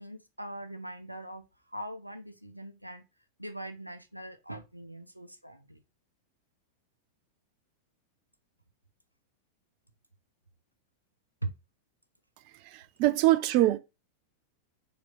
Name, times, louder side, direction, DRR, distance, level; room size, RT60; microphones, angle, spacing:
voice 1, 0.0-3.0 3.4-5.8 11.4-11.5, right 1 dB, 90° right, 0.6 m, -41 dB
voice 2, 12.7-13.8, right 16 dB, 45° right, 0.5 m, -24 dB
4.5 x 3.1 x 3.8 m
figure-of-eight pair, 90°, 0 cm